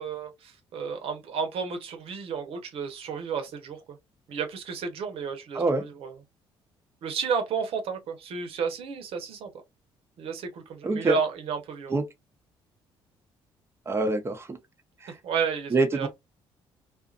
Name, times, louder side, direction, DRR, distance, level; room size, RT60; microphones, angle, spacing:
voice 1, 0.0-4.0 4.3-6.1 7.0-9.5 10.2-12.0 15.2-16.1, right 6 dB, 70° right, 0.9 m, -32 dB
voice 2, 10.8-11.2 11.9-12.0 13.9-14.6 15.0-15.1 15.7-16.1, right 2 dB, 25° right, 0.8 m, -25 dB
2.5 x 2.5 x 2.4 m
cardioid pair, 85°, 10 cm